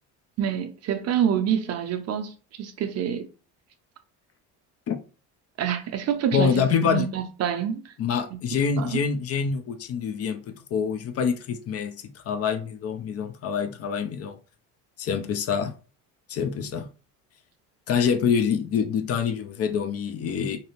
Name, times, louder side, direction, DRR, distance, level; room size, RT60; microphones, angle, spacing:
voice 1, 0.4-3.3 5.6-7.9 8.3-8.4 8.8-9.0, right 9 dB, 45° right, 0.5 m, -27 dB
voice 2, 6.3-7.1 8.0-11.9 12.3-14.4 15.0-15.8 16.3-16.9 17.9-20.6, left 7 dB, 40° left, 0.5 m, -26 dB
2.6 x 2.0 x 2.9 m
supercardioid pair, 85°, 36 cm